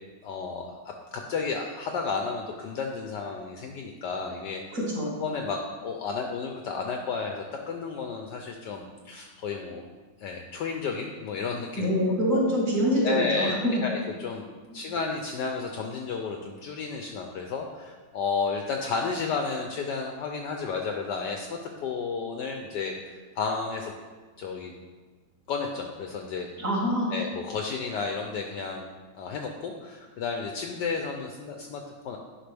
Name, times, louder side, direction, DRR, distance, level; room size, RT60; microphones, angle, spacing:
voice 1, 0.2-4.6 5.2-9.8 10.2-11.9 13.0-14.5 14.7-23.9 24.4-24.7 25.5-26.5 27.1-28.9 29.1-32.2, left 4 dB, 70° left, 3 dB, 1.1 m, -32 dB
voice 2, 4.7-5.2 11.8-13.8 14.7-14.8 26.6-27.1, equal, 40° right, -6 dB, 2.2 m, -25 dB
10.0 x 5.3 x 3.4 m, 1.4 s
omnidirectional pair, 2.3 m